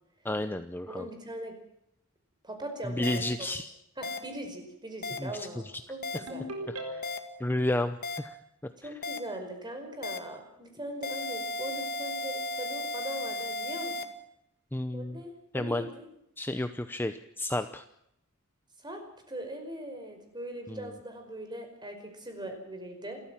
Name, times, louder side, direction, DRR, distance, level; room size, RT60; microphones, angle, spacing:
voice 1, 0.2-1.1 2.8-3.7 5.2-5.5 6.1-6.2 6.9-7.0 7.4-8.4 14.7-15.2 15.5-15.9 16.4-17.8 20.7-20.9, left 1 dB, 10° left, 9 dB, 0.8 m, -31 dB
voice 2, 0.9-1.6 2.4-3.5 4.0-7.0 8.8-14.0 14.9-16.1 18.8-23.2, right 1 dB, 20° right, 5 dB, 5.1 m, -40 dB
sound 1, 3.0-3.2 4.0-4.2 5.0-5.2 6.0-6.2 7.0-7.2 8.0-8.2 9.0-9.2 10.0-10.2 11.0-14.0, left 2 dB, 45° left, 2.1 m, -34 dB
Ringtone, 6.3-7.4, equal, 70° right, 4.7 m, -38 dB
28.5 x 14.5 x 7.4 m, 0.78 s
head